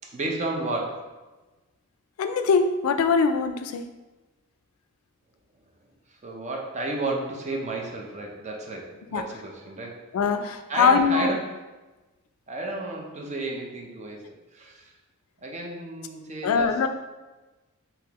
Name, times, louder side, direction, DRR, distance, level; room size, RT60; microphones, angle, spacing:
voice 1, 0.0-1.1 6.1-10.0 10.3-11.6 12.5-14.2 14.5-14.9 15.4-16.8, right 2 dB, 35° right, 0 dB, 0.5 m, -32 dB
voice 2, 2.2-3.9 9.1-9.2 10.1-11.3 16.4-16.9, left 5 dB, 85° left, 8 dB, 0.3 m, -22 dB
3.7 x 2.8 x 2.9 m, 1.2 s
head